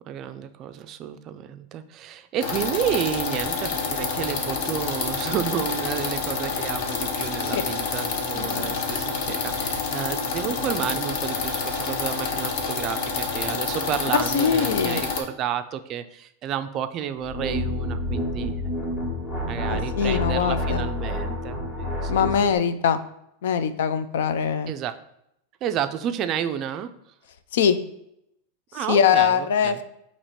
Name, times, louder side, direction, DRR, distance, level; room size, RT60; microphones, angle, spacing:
voice 1, 0.1-18.6 19.5-22.1 24.7-25.0 25.6-26.9 28.7-29.8, right 9 dB, 35° right, 10 dB, 0.3 m, -31 dB
sound 1, 2.4-15.2, left 4 dB, 60° left, 0.8 m, -28 dB
voice 2, 8.3-8.7 14.3-15.0 19.7-20.8 22.1-23.0 23.4-24.7 27.5-27.8 28.8-29.8, left 7 dB, 80° left, 12 dB, 0.4 m, -22 dB
sound 2, 17.2-22.5, left 1 dB, 35° left, 1.2 m, -28 dB
4.2 x 2.9 x 4.3 m, 0.78 s
supercardioid pair, 150°, 0 cm